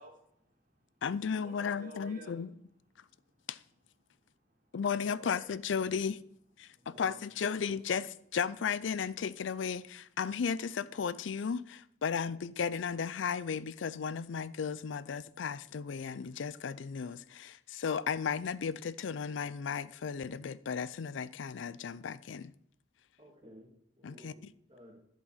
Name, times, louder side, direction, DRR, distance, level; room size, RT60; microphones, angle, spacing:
voice 1, 0.0-2.3 3.0-3.5 4.0-4.8 5.0-5.5 6.6-6.9, right 1 dB, 45° right, 2.8 m, -55 dB
voice 2, 1.0-2.5 3.5-3.6 4.7-6.2 6.6-22.5 24.0-24.5, left 6 dB, 90° left, 0.4 m, -35 dB
voice 3, 6.8-7.2 7.6-7.8 23.2-25.0, equal, 30° right, 2.2 m, -56 dB
11.5 x 5.2 x 5.7 m
head